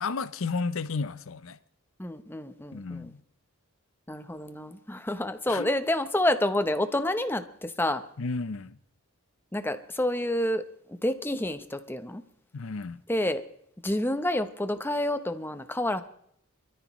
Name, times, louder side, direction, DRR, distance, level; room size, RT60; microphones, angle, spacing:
voice 1, 0.0-1.6 2.7-3.2 5.5-5.7 8.2-8.8 12.5-13.0, left 4 dB, 65° left, 0.6 m, -32 dB
voice 2, 2.0-3.1 4.1-8.0 9.5-12.2 13.1-13.4 13.8-16.0, left 1 dB, 10° left, 0.8 m, -29 dB
24.5 x 13.5 x 3.1 m
head